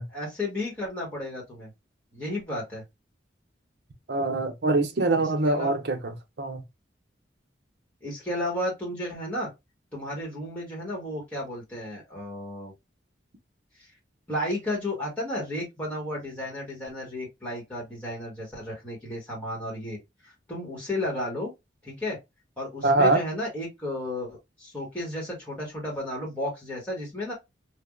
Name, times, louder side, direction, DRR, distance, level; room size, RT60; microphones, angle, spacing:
voice 1, 0.1-1.7 2.1-2.8 5.4-5.7 8.0-9.5 9.9-12.7 13.8-13.9 14.3-20.0 20.2-21.5 21.8-22.2 22.6-27.3, left 1 dB, 5° left, 1.3 m, -33 dB
voice 2, 4.1-6.6 22.8-23.2, right 2 dB, 65° right, 0.6 m, -24 dB
3.4 x 2.3 x 2.2 m
head